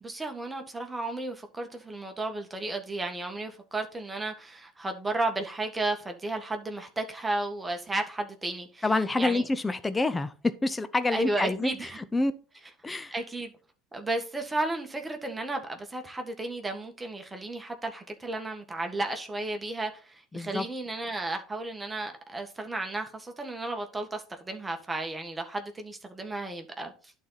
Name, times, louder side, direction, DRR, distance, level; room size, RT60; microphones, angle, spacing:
voice 1, 0.0-8.9 9.2-9.4 11.1-12.0 13.1-13.5 13.9-27.1, right 2 dB, 15° right, 1.6 m, -33 dB
voice 2, 8.8-12.3 12.8-13.1 20.3-20.7, left 2 dB, 15° left, 0.7 m, -27 dB
11.5 x 4.1 x 4.0 m
hypercardioid pair, 80°, 0 cm